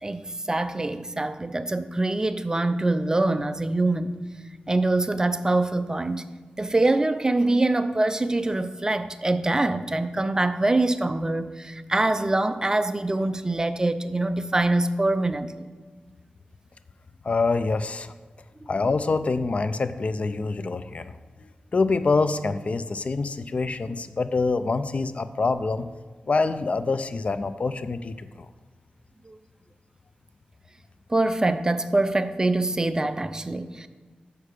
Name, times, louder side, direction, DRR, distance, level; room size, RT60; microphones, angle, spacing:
voice 1, 0.0-4.2 4.7-6.2 6.6-15.5 18.6-18.7 29.3-29.4 31.1-33.9, right 2 dB, 20° right, 11 dB, 0.4 m, -24 dB
voice 2, 17.2-18.1 18.7-21.1 21.7-25.9 26.3-28.5, left 3 dB, 45° left, 12 dB, 0.4 m, -25 dB
6.6 x 6.4 x 4.9 m, 1.4 s
wide cardioid pair, 100°, 3 cm